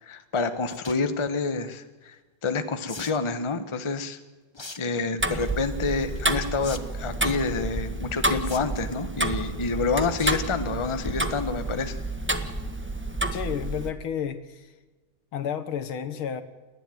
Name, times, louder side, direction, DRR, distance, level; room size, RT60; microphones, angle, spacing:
voice 1, 0.0-2.2 2.4-4.2 4.8-12.0, left 4 dB, 20° left, 9 dB, 1.0 m, -28 dB
sound 1, 0.6-1.0 2.9-3.2 4.5-4.8 5.2-5.5 6.6-6.8 7.1-7.2 8.4-8.9 10.2-10.4 10.8-11.1 11.4-11.5 11.7-11.8, left 3 dB, 35° left, 0.4 m, -39 dB
Tick-tock, 5.2-13.9, right 1 dB, 10° right, 0.9 m, -29 dB
voice 2, 13.3-14.7 15.3-16.4, left 8 dB, 75° left, 11 dB, 2.2 m, -31 dB
29.5 x 11.5 x 9.2 m, 1.2 s
omnidirectional pair, 2.3 m